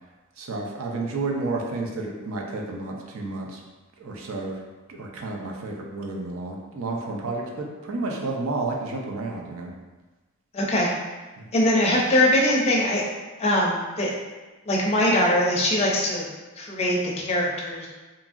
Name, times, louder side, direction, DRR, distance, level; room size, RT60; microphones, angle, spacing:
voice 1, 0.4-3.6 4.0-4.6 4.9-9.7 11.4-11.5, right 3 dB, 70° right, 0 dB, 0.5 m, -31 dB
voice 2, 10.5-10.9 11.5-13.0 13.4-14.1 14.7-16.3 16.6-17.9, left 1 dB, 30° left, -2 dB, 0.5 m, -22 dB
2.8 x 2.6 x 2.4 m, 1.2 s
head